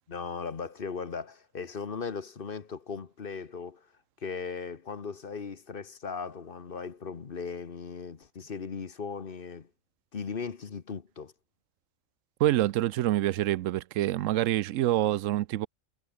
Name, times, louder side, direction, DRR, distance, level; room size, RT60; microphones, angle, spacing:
voice 1, 0.1-3.9 4.2-9.7 10.1-11.3, left 5 dB, 45° left, 1.3 m, -38 dB
voice 2, 12.4-15.7, right 14 dB, 80° right, 0.9 m, -26 dB
omnidirectional pair, 1.3 m